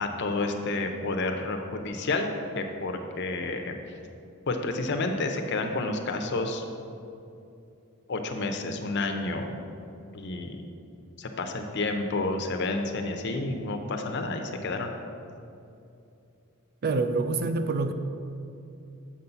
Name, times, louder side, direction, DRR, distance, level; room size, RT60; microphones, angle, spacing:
voice 1, 0.0-2.3 2.5-3.7 4.5-6.6 8.1-9.6 10.1-10.6 11.2-14.9, left 2 dB, 55° left, 5 dB, 0.6 m, -30 dB
voice 2, 16.8-17.9, right 3 dB, 45° right, 8 dB, 0.4 m, -26 dB
7.4 x 4.0 x 5.7 m, 2.7 s
head